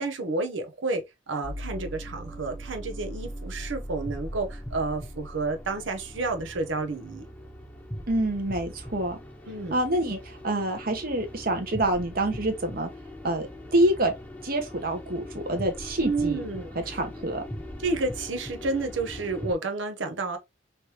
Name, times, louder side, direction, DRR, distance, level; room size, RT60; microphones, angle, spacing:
voice 1, 0.0-7.3 9.5-9.7 16.0-17.0 17.8-20.4, right 3 dB, 85° right, 0.8 m, -30 dB
sound 1, 1.4-19.5, equal, 10° left, 0.6 m, -40 dB
voice 2, 8.1-9.2 9.7-12.9 13.2-13.5 13.7-14.1 14.4-16.4 16.7-17.4, right 1 dB, 50° right, 0.9 m, -26 dB
3.2 x 3.1 x 2.9 m
head